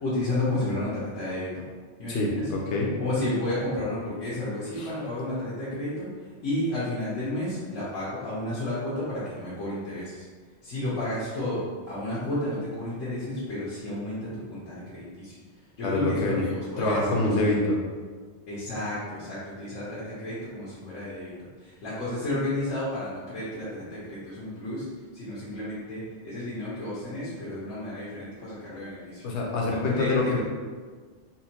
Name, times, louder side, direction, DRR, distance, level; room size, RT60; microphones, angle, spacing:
voice 1, 0.0-1.6 2.0-2.2 3.0-6.1 6.4-10.2 10.6-15.4 15.8-17.6 18.5-21.3 21.6-24.8 25.1-29.2 29.6-30.4, left 1 dB, 85° left, -10 dB, 1.3 m, -32 dB
voice 2, 2.1-3.0 4.7-4.9 15.8-16.4 16.8-17.8 29.2-30.4, left 2 dB, 65° left, -2 dB, 0.9 m, -25 dB
4.1 x 2.2 x 2.8 m, 1.5 s
omnidirectional pair, 1.3 m